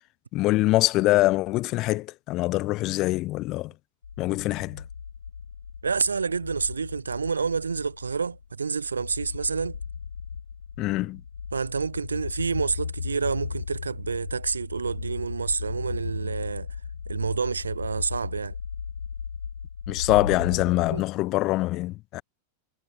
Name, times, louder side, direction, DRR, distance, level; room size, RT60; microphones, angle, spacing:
voice 1, 0.3-3.7 4.2-4.8 10.8-11.2 19.9-22.2, left 19 dB, 40° left, 0.6 m, -24 dB
sound 1, 4.0-21.0, left 6 dB, 70° left, 4.6 m, -36 dB
voice 2, 5.8-9.8 11.5-16.7 17.1-18.6 20.9-21.0, right 5 dB, 75° right, 1.3 m, -28 dB
figure-of-eight pair, 90°, 0 cm